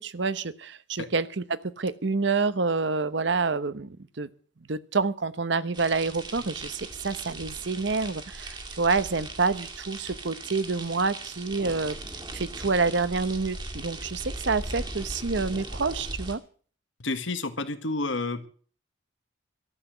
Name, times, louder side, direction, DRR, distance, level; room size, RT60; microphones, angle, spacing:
voice 1, 0.0-1.4 1.8-4.3 4.7-12.0 12.3-16.4, right 4 dB, 65° right, 15 dB, 0.9 m, -28 dB
sound 1, 5.7-16.3, right 2 dB, 25° right, 1.9 m, -38 dB
voice 2, 17.0-18.5, left 2 dB, 75° left, 10 dB, 1.6 m, -30 dB
13.0 x 8.1 x 8.7 m, 0.43 s
head